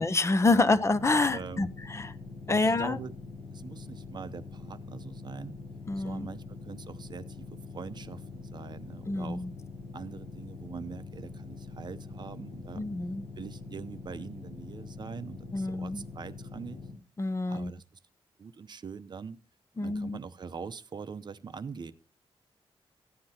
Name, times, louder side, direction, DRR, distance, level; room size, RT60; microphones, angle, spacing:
voice 1, 0.0-2.1 2.5-3.0 5.9-6.3 9.1-9.5 12.8-13.3 15.5-16.0 17.2-17.7 19.8-20.2, left 3 dB, 25° left, 13 dB, 0.6 m, -27 dB
sound 1, 0.9-16.9, left 3 dB, 60° left, 6.6 m, -44 dB
voice 2, 1.3-1.7 2.5-3.1 3.5-5.6 6.0-9.4 9.9-12.8 13.4-16.8 17.5-17.8 18.4-19.4 19.8-21.9, right 5 dB, 45° right, 13 dB, 0.7 m, -43 dB
15.0 x 9.7 x 2.8 m, 0.35 s
wide cardioid pair, 155°, 11 cm